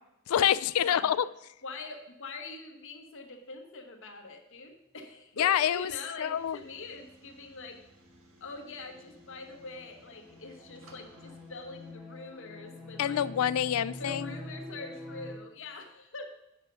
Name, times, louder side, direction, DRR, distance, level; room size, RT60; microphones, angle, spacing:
voice 1, 0.3-1.3 5.4-5.9 6.2-6.6 13.0-14.3, left 10 dB, 85° left, 17 dB, 0.3 m, -26 dB
voice 2, 1.6-7.8 8.4-13.3 13.9-16.3, left 3 dB, 65° left, 4 dB, 1.2 m, -44 dB
sound 1, 6.3-11.9, right 3 dB, 80° right, 1.3 m, -60 dB
sound 2, 6.6-15.4, left 1 dB, ahead, 1.8 m, -47 dB
8.0 x 5.4 x 5.4 m, 0.87 s
head